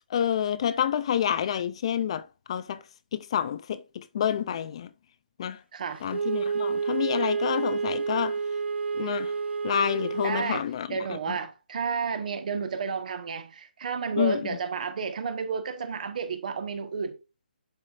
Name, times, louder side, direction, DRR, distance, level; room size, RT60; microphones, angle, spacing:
voice 1, 0.1-2.8 3.1-4.9 5.4-5.6 6.0-8.4 8.9-9.3 9.6-11.4 14.2-14.4, left 9 dB, 30° left, 0.4 m, -28 dB
Wind instrument woodwind instrument, 6.1-10.6, right 5 dB, 85° right, 0.4 m, -29 dB
voice 2, 10.2-17.2, right 5 dB, 45° right, 1.3 m, -31 dB
11.0 x 4.8 x 2.5 m
hypercardioid pair, 160°, 6 cm